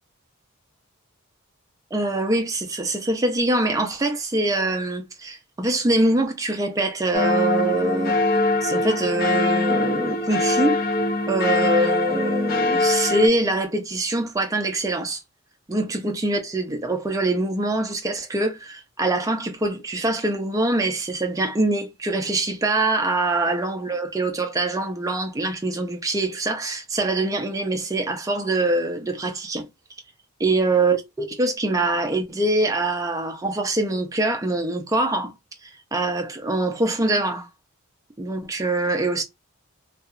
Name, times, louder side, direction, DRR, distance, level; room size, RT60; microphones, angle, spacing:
voice 1, 1.9-8.2 8.6-10.8 11.3-15.2 15.7-29.7 30.4-35.3 35.6-37.5 38.2-39.2, right 2 dB, 15° right, 0.4 m, -24 dB
sound 1, 7.1-13.3, left 2 dB, 45° left, 0.6 m, -22 dB
2.7 x 2.2 x 2.4 m
head